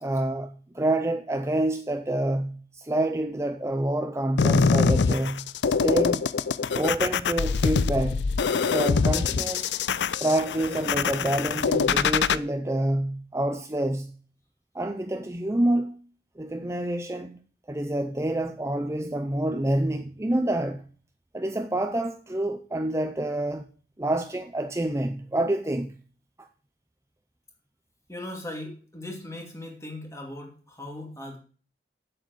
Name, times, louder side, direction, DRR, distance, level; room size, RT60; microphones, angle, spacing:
voice 1, 0.0-6.3 6.7-8.3 8.5-9.7 10.2-14.1 14.7-16.0 16.4-17.4 17.7-20.8 21.3-23.7 24.0-25.9 26.4-26.5, right 1 dB, 15° right, 0.5 m, -27 dB
sound 1, 4.4-12.4, left 5 dB, 80° left, 0.5 m, -24 dB
voice 2, 28.1-31.4, left 1 dB, 15° left, 2.5 m, -38 dB
8.0 x 7.7 x 7.8 m
head